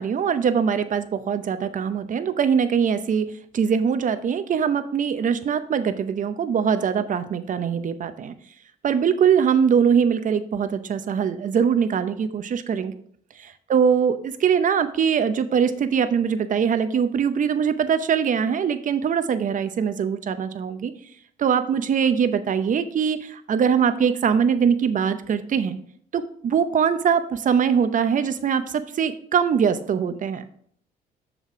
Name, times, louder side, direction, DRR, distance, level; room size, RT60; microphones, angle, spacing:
voice 1, 0.0-3.3 3.5-8.3 8.8-12.9 13.4-20.9 21.4-25.8 26.1-30.4, right 7 dB, 50° right, 11 dB, 0.7 m, -22 dB
6.4 x 5.0 x 3.6 m, 0.62 s
supercardioid pair, 65°, 18 cm